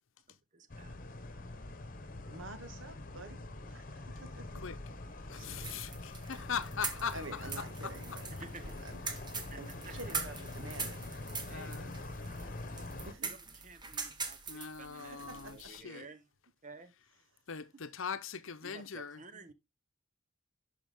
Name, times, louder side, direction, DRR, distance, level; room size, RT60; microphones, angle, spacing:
voice 1, 0.5-0.9 5.4-5.8 8.4-8.7 9.4-9.6 9.8-10.1 11.5-12.6 13.2-13.4 13.6-16.2 16.6-16.9 18.6-19.5, right 3 dB, 40° right, 1.1 m, -53 dB
sound 1, 0.7-13.1, left 2 dB, 40° left, 1.2 m, -44 dB
voice 2, 2.3-4.6 5.3-5.8 6.2-6.4 7.1-8.3 8.8-9.0 9.6-11.3 13.0-13.3 15.0-15.5, right 2 dB, 65° right, 1.8 m, -49 dB
voice 3, 5.2-8.2 9.1-9.2 11.5-12.4 13.9-14.1 14.5-16.1 17.5-19.2, left 6 dB, 70° left, 0.8 m, -41 dB
sound 2, 5.3-15.8, right 4 dB, 20° right, 1.3 m, -43 dB
11.5 x 5.0 x 3.6 m
head